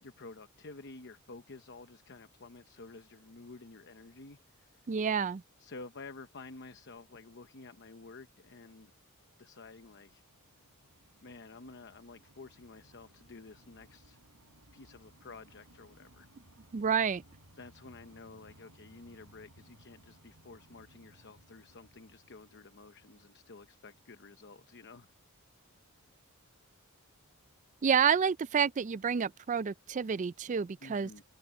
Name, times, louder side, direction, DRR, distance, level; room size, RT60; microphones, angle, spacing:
voice 1, 0.0-4.8 5.6-8.9 9.4-10.2 11.2-14.2 14.7-16.3 17.6-25.1 30.8-31.2, left 3 dB, 50° left, 0.9 m, -51 dB
voice 2, 4.9-5.4 16.7-17.2 27.8-31.1, right 7 dB, 35° right, 0.4 m, -29 dB
sound 1, 9.9-24.3, right 1 dB, 75° right, 6.3 m, -62 dB
head